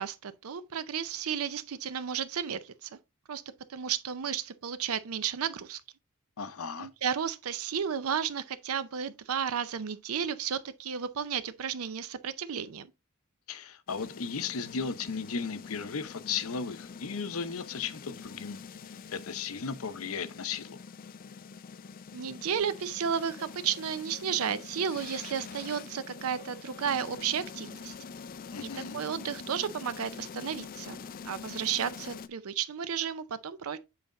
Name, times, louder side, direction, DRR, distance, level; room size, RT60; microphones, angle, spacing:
voice 1, 0.0-2.9 3.3-3.4 3.7-5.8 6.8-12.9 22.1-27.9 28.6-28.7 28.9-33.8, right 7 dB, 75° right, 0.5 m, -33 dB
voice 2, 6.4-6.9 13.5-18.6 19.1-20.8 28.5-29.0, left 5 dB, 70° left, 0.7 m, -35 dB
sound 1, 13.9-32.3, left 5 dB, 40° left, 0.3 m, -45 dB
7.7 x 4.1 x 3.7 m
head